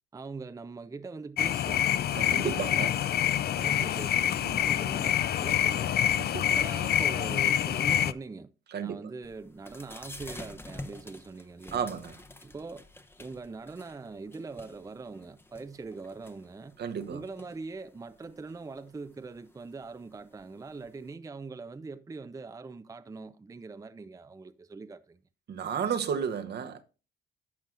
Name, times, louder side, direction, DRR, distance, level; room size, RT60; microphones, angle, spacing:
voice 1, 0.1-2.0 2.3-2.9 3.5-6.0 6.5-8.5 8.8-11.9 12.4-12.9 13.2-16.8 17.1-25.2, right 4 dB, 15° right, 0.5 m, -42 dB
sound 1, 1.4-8.1, left 10 dB, 55° left, 0.4 m, -26 dB
voice 2, 2.1-2.9 6.2-6.6 8.7-9.0 11.7-12.1 16.8-17.2 25.5-26.8, right 7 dB, 55° right, 0.9 m, -32 dB
sound 2, 9.2-21.1, left 2 dB, 10° left, 0.8 m, -50 dB
12.0 x 7.4 x 2.5 m
cardioid pair, 90°, 20 cm